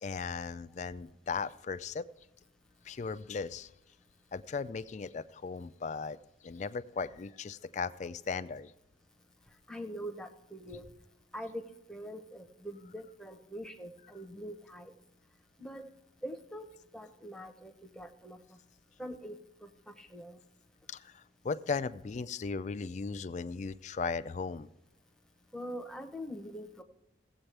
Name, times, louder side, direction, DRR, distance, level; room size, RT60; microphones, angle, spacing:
voice 1, 0.0-2.1 2.9-3.7 4.3-6.2 6.4-8.7 20.9-24.7, left 5 dB, 40° left, 14 dB, 0.3 m, -37 dB
voice 2, 9.7-10.9 11.3-11.6 11.9-14.9 15.6-15.9 16.2-16.7 16.9-18.4 19.0-20.4 25.5-26.8, equal, 5° left, 3 dB, 0.7 m, -43 dB
17.0 x 8.0 x 3.3 m, 0.84 s
head